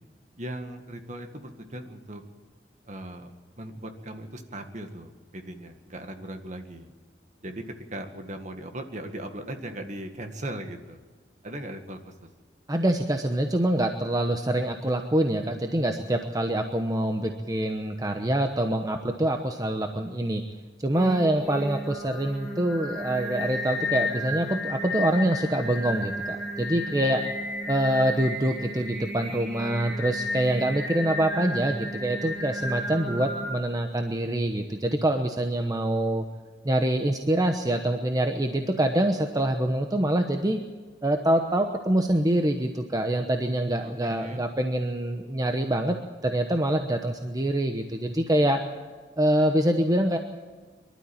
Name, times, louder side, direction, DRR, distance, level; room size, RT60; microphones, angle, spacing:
voice 1, 0.4-2.2 2.8-3.3 3.6-6.9 7.4-11.0 11.4-12.3 43.8-44.5, right 1 dB, 45° right, 6 dB, 1.9 m, -38 dB
voice 2, 12.7-20.4 20.8-27.2 27.7-36.2 36.6-40.6 41.0-46.0 46.2-48.6 49.2-50.2, right 1 dB, 20° right, 5 dB, 1.0 m, -25 dB
Singing, 20.9-33.5, left 1 dB, ahead, 7.3 m, -33 dB
24.0 x 12.5 x 8.7 m, 1.4 s
head